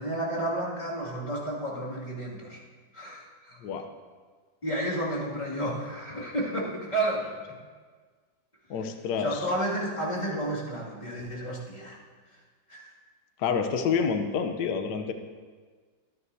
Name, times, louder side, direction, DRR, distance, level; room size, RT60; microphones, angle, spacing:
voice 1, 0.0-2.6 2.9-3.6 4.6-7.6 9.2-12.0 12.7-12.9, right 1 dB, 20° left, -6 dB, 2.4 m, -31 dB
voice 2, 8.7-9.4 13.4-15.1, left 6 dB, 65° left, 6 dB, 1.4 m, -28 dB
23.0 x 11.0 x 2.7 m, 1.5 s
omnidirectional pair, 2.1 m